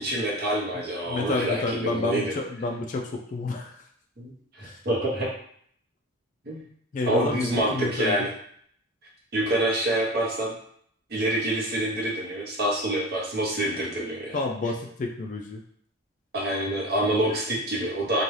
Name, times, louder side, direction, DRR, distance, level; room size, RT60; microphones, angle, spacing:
voice 1, 0.0-2.3 4.2-5.3 6.5-6.6 7.1-8.3 9.3-10.5 11.1-14.4 16.3-18.2, right 1 dB, 50° right, -3 dB, 0.8 m, -26 dB
voice 2, 1.1-3.7 4.6-4.8 6.9-8.2 14.3-15.6 17.3-17.4, left 3 dB, 40° left, 2 dB, 0.3 m, -29 dB
2.7 x 2.2 x 3.1 m, 0.64 s
head